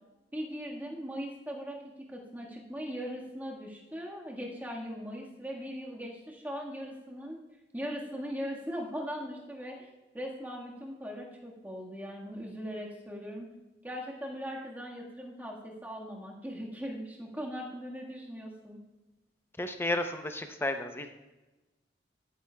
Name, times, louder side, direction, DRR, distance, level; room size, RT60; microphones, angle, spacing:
voice 1, 0.3-7.4 7.7-9.9 10.1-13.5 13.8-18.8, equal, 10° right, -2 dB, 1.6 m, -39 dB
voice 2, 19.6-21.1, left 1 dB, 15° left, 7 dB, 0.6 m, -32 dB
14.0 x 9.4 x 2.3 m, 1.1 s
head